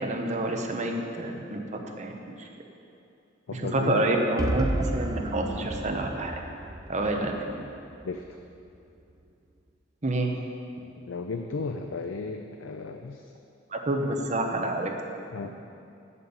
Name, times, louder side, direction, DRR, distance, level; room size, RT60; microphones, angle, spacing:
voice 1, 0.0-2.5 3.5-6.3 6.9-7.5 10.0-10.3 13.7-14.9, right 1 dB, 35° right, 2 dB, 0.9 m, -28 dB
voice 2, 3.5-4.0 7.2-7.3 8.0-8.2 11.0-13.2 14.0-14.2 15.3-15.5, left 4 dB, 85° left, 5 dB, 0.5 m, -35 dB
sound 1, 4.4-8.3, right 1 dB, 20° right, 0.5 m, -32 dB
8.3 x 7.2 x 7.1 m, 2.6 s
head